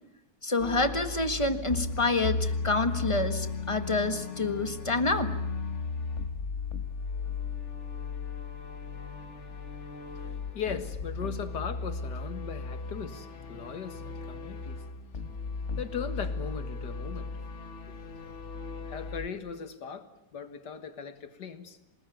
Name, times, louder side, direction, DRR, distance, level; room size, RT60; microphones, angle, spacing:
voice 1, 0.4-5.3, left 2 dB, 20° left, 1.5 m, -28 dB
sound 1, 0.6-19.3, left 4 dB, 45° left, 1.7 m, -36 dB
voice 2, 10.1-15.2 15.8-17.5 17.9-18.0 18.9-21.8, left 7 dB, 90° left, 2.3 m, -39 dB
27.5 x 19.5 x 9.3 m
omnidirectional pair, 1.8 m